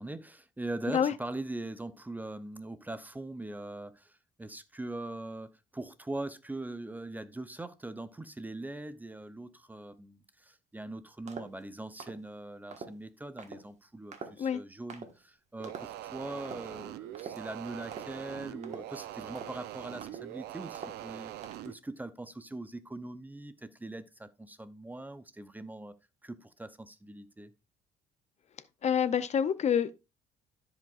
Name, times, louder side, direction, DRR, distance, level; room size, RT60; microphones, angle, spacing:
voice 1, 0.0-26.0 26.2-27.5, right 2 dB, 10° right, 0.6 m, -41 dB
sound 1, 11.3-11.6 12.0-12.3 12.7-13.0 13.4-13.6 14.1-14.5 14.9-15.1 15.6-16.0 16.4-16.7 17.1-17.5 17.9-18.2 18.6-19.0 19.3-19.6 20.0-20.4 20.7-21.1 21.4-21.7, right 5 dB, 40° right, 1.5 m, -45 dB
sound 2, 15.6-21.7, right 13 dB, 75° right, 0.6 m, -43 dB
voice 2, 28.8-29.9, left 8 dB, 40° left, 0.6 m, -27 dB
14.5 x 5.0 x 2.4 m
cardioid pair, 110°, 17 cm